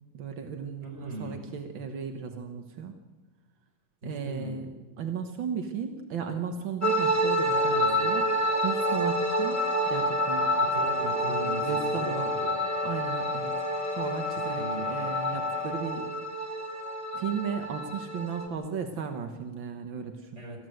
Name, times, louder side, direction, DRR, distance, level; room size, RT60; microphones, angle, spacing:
voice 1, 0.1-3.0 4.0-4.7 5.0-8.2 8.6-9.6 9.9-10.6 11.3-12.3 12.8-13.6 14.0-16.1 17.1-20.3, right 6 dB, 65° right, 5 dB, 1.2 m, -35 dB
voice 2, 0.8-1.4 4.0-4.7 7.5-8.1 10.6-12.6 14.4-14.9 20.4-20.7, right 1 dB, 20° right, 2 dB, 4.4 m, -40 dB
sound 1, 6.8-18.5, right 1 dB, 10° left, 0.7 m, -28 dB
sound 2, 8.5-16.0, left 6 dB, 80° left, 4.8 m, -35 dB
28.0 x 14.5 x 7.8 m, 1.3 s
omnidirectional pair, 3.8 m